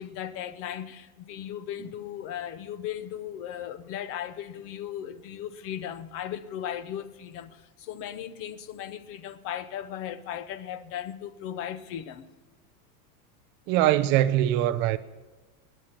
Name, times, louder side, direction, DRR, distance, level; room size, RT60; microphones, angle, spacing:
voice 1, 0.0-12.3, left 10 dB, 30° left, 0.7 m, -37 dB
voice 2, 13.7-15.0, right 13 dB, 30° right, 0.4 m, -22 dB
20.5 x 10.0 x 5.9 m
supercardioid pair, 165°, 43 cm